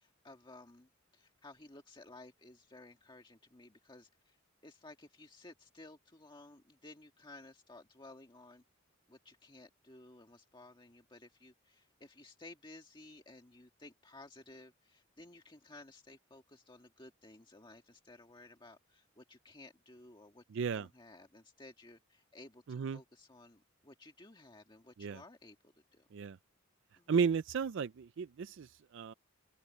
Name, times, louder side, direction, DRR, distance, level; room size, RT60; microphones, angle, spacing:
voice 1, 0.0-4.4 4.6-8.6 9.1-20.4 20.7-25.6 25.9-26.1 27.0-27.1, left 2 dB, 25° left, 1.7 m, -56 dB
voice 2, 20.5-20.9 22.7-23.0 25.0-25.2 26.1-26.4 27.1-29.1, right 6 dB, 60° right, 0.4 m, -34 dB
head